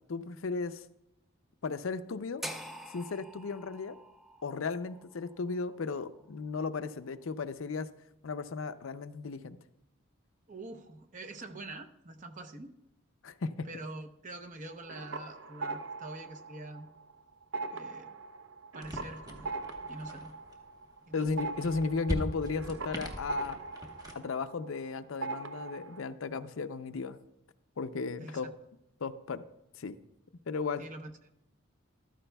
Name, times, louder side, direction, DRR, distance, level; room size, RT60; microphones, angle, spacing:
voice 1, 0.1-0.8 1.6-2.4 2.9-4.0 4.4-7.9 8.2-9.6 13.2-13.7 21.1-23.6 24.1-27.2 27.8-28.5 29.0-29.4 29.8-29.9 30.5-30.8, left 4 dB, 80° left, 11 dB, 0.5 m, -35 dB
sound 1, 2.4-6.5, equal, ahead, 0.5 m, -46 dB
voice 2, 10.5-12.7 13.6-16.9 17.7-18.1 18.7-19.5 19.9-20.3 21.1-21.3 28.2-28.5 30.8-31.1, right 2 dB, 40° right, 6 dB, 0.7 m, -45 dB
sound 2, 14.7-17.1 17.4-24.9 25.2-26.0, right 3 dB, 70° right, 0.8 m, -41 dB
sound 3, 18.8-24.2, equal, 20° right, 1.1 m, -41 dB
14.0 x 13.0 x 2.3 m, 0.87 s
head